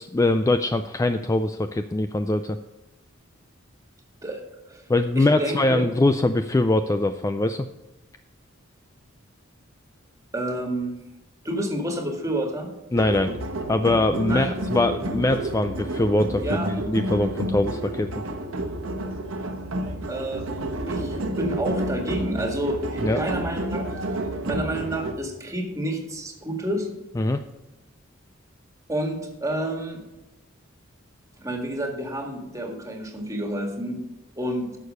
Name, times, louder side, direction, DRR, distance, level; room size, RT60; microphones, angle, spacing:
voice 1, 0.0-2.6 4.9-7.7 12.9-13.4 13.7-18.1 23.0-23.2 27.2-27.4, left 2 dB, 15° left, 9 dB, 0.3 m, -22 dB
voice 2, 5.1-5.8 10.3-11.0 11.4-12.7 14.3-14.5 16.4-16.7 20.1-20.5 20.9-23.8 24.5-26.9 28.9-30.0 31.4-34.0 34.4-34.8, right 1 dB, 15° right, 2 dB, 1.8 m, -29 dB
sound 1, 12.9-25.1, right 1 dB, 85° right, 1.4 m, -30 dB
11.5 x 6.6 x 5.4 m, 1.0 s
head